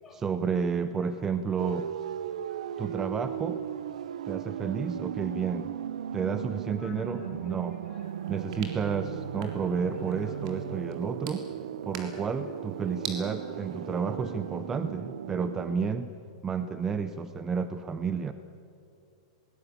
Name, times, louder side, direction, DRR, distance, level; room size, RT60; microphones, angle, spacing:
voice 1, 0.1-1.9 2.8-3.6 4.3-5.7 6.1-7.8 8.3-11.4 11.8-16.1 16.4-18.3, right 6 dB, 10° right, 10 dB, 0.6 m, -31 dB
sound 1, 1.6-15.9, right 10 dB, 80° right, 0.6 m, -37 dB
voice 2, 2.5-2.9 6.8-7.5 7.9-8.5 9.4-9.5 10.0-10.3 12.1-12.3 12.9-13.3 14.0-14.1, left 5 dB, 15° left, -2 dB, 5.5 m, -55 dB
sound 2, 8.0-13.2, right 6 dB, 55° right, 3.7 m, -46 dB
21.0 x 19.5 x 8.4 m, 2.5 s
supercardioid pair, 170°, 4 cm